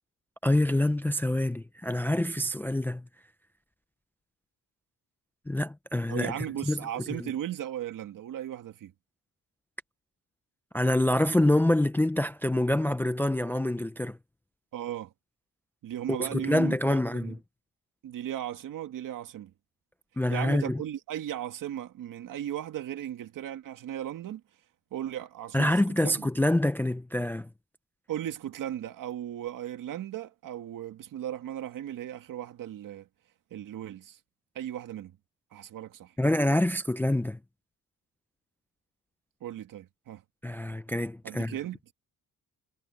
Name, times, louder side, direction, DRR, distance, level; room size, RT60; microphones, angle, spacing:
voice 1, 0.4-3.0 5.5-6.3 6.7-6.8 7.2-7.3 10.7-14.2 16.1-17.4 20.2-20.8 25.5-27.5 36.2-37.4 40.4-41.5, left 1 dB, 5° left, 0.4 m, -26 dB
voice 2, 6.1-8.9 14.7-15.1 15.8-17.3 18.0-19.5 20.3-24.4 24.9-26.3 28.1-33.1 33.5-34.2 34.6-35.2 35.5-36.1 39.4-40.2 41.2-41.8, right 11 dB, 70° right, 1.9 m, -36 dB
cardioid pair, 175°, 34 cm